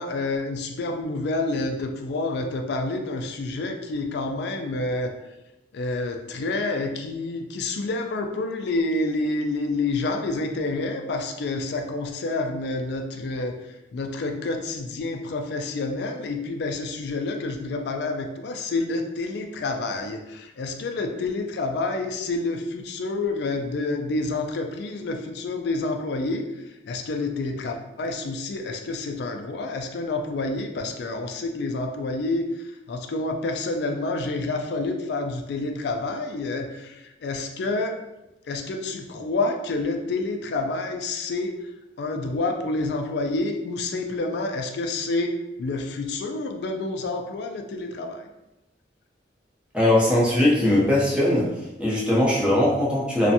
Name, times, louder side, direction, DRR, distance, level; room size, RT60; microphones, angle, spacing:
voice 1, 0.0-5.1 5.7-13.6 13.9-26.5 26.8-38.0 38.5-41.6 42.0-45.3 45.6-48.3, left 2 dB, 60° left, 4 dB, 0.3 m, -28 dB
voice 2, 49.7-51.5 51.8-53.3, left 1 dB, 5° right, -6 dB, 0.6 m, -20 dB
2.4 x 2.1 x 2.7 m, 0.96 s
head